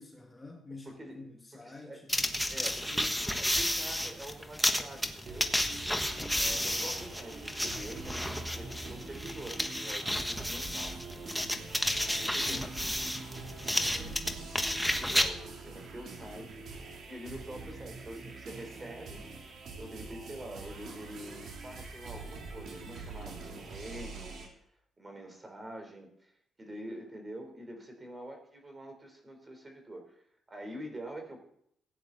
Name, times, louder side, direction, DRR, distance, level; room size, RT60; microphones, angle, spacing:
voice 1, 0.0-2.3 12.4-12.8 13.7-14.3, left 2 dB, 20° left, 1 dB, 2.0 m, -49 dB
voice 2, 0.9-2.0 2.5-5.5 6.3-11.0 12.1-12.7 13.4-14.2 15.0-19.3 19.8-24.4 25.0-26.3 26.6-30.2 30.5-31.4, right 1 dB, 25° right, 5 dB, 3.7 m, -46 dB
sound 1, 2.1-15.3, equal, ahead, 1.3 m, -32 dB
sound 2, 5.3-24.5, right 3 dB, 65° right, 3.3 m, -45 dB
16.5 x 9.7 x 4.1 m, 0.69 s
cardioid pair, 90°, 0 cm